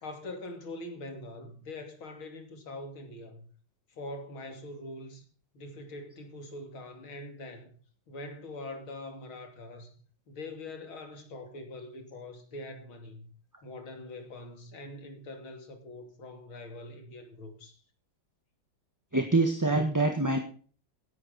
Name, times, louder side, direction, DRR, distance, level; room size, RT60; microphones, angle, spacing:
voice 1, 0.0-3.5 3.9-5.3 5.5-7.8 8.1-10.0 10.3-13.3 13.6-17.8, left 2 dB, 80° left, 3.5 m, -43 dB
voice 2, 19.1-20.4, right 2 dB, 10° right, 1.3 m, -25 dB
16.5 x 11.5 x 4.2 m
omnidirectional pair, 2.2 m